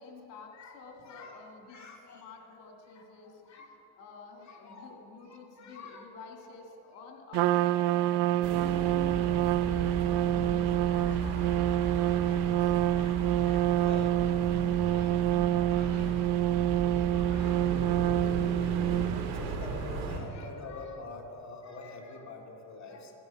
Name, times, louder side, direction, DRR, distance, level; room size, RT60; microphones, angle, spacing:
voice 1, 0.0-1.9 2.1-3.6 4.0-12.7 15.7-16.1, left 3 dB, 85° left, 2 dB, 2.5 m, -50 dB
voice 2, 0.5-1.4 1.7-2.4 2.9-3.7 4.4-4.9 5.2-6.6 7.1-7.2 7.6-8.9 9.3-9.6 10.9-11.3 11.6-14.2 14.5-16.2 16.7-23.1, left 3 dB, 35° left, 1 dB, 2.4 m, -49 dB
Trumpet, 7.3-19.5, right 13 dB, 60° right, 0.5 m, -27 dB
sound 1, 8.4-20.2, right 4 dB, 80° right, 3.2 m, -36 dB
15.5 x 11.0 x 5.9 m, 2.8 s
supercardioid pair, 100°, 47 cm